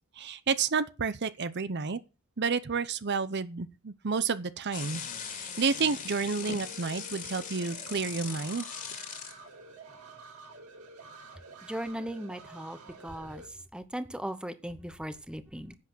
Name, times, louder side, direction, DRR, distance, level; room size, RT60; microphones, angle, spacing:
voice 1, 0.2-2.0 2.4-8.7, right 5 dB, 50° right, 0.7 m, -30 dB
sound 1, 4.7-9.3, left 7 dB, 40° left, 2.6 m, -40 dB
sound 2, 6.4-13.5, right 3 dB, 85° right, 4.9 m, -50 dB
voice 2, 11.6-15.8, right 1 dB, 5° right, 0.9 m, -38 dB
10.5 x 8.3 x 6.2 m
head